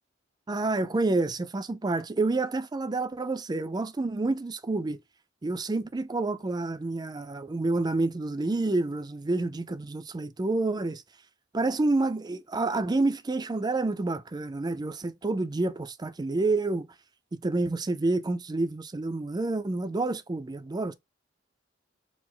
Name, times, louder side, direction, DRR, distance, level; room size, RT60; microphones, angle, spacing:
voice 1, 0.5-5.0 5.4-11.0 11.5-16.9 17.4-20.9, right 2 dB, 20° right, 0.4 m, -28 dB
4.7 x 2.1 x 3.8 m
head